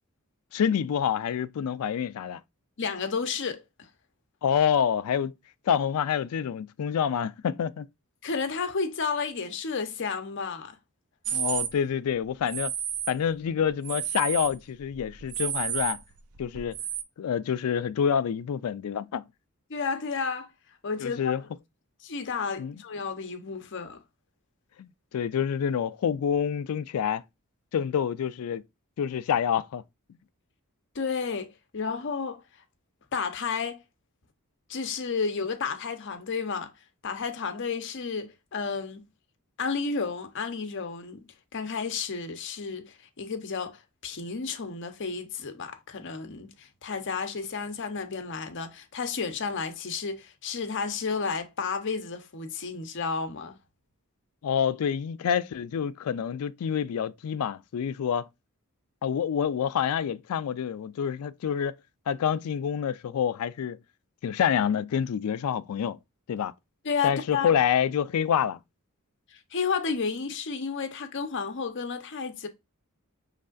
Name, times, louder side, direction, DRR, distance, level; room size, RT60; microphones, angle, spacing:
voice 1, 0.5-2.4 4.4-5.3 5.7-7.9 11.3-12.7 13.1-16.0 16.4-16.8 17.2-19.3 21.0-21.4 22.6-22.8 24.8-24.9 25.1-27.2 27.7-28.6 29.0-29.8 54.4-58.3 59.0-61.8 62.1-63.8 64.2-66.0 66.3-66.5 67.0-68.6, left 8 dB, 75° left, 0.3 m, -27 dB
voice 2, 2.8-3.9 8.2-10.7 19.7-20.5 20.8-21.4 22.0-24.0 30.9-32.4 33.1-33.8 34.7-36.7 37.0-39.0 39.6-41.2 41.5-53.6 66.8-67.5 69.3-72.5, left 5 dB, 55° left, 0.7 m, -32 dB
sound 1, 11.2-11.7 12.5-13.2 13.6-14.6 14.9-17.0, right 10 dB, 70° right, 0.5 m, -31 dB
5.4 x 3.2 x 2.4 m
head